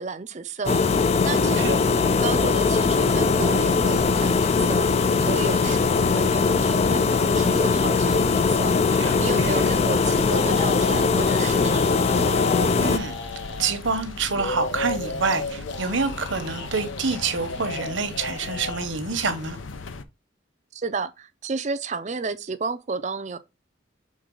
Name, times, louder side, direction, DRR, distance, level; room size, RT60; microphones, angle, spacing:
voice 1, 0.0-11.9 20.7-23.4, right 4 dB, 35° right, 0.5 m, -32 dB
sound 1, 0.7-13.0, left 4 dB, 30° left, 0.3 m, -21 dB
sound 2, 2.9-20.0, left 3 dB, 85° left, 0.7 m, -37 dB
voice 2, 9.0-9.7 12.8-13.1 13.6-19.6, right 4 dB, 75° right, 1.1 m, -27 dB
sound 3, 10.3-13.8 14.3-18.9, left 2 dB, 70° left, 1.1 m, -32 dB
6.6 x 3.9 x 3.7 m
head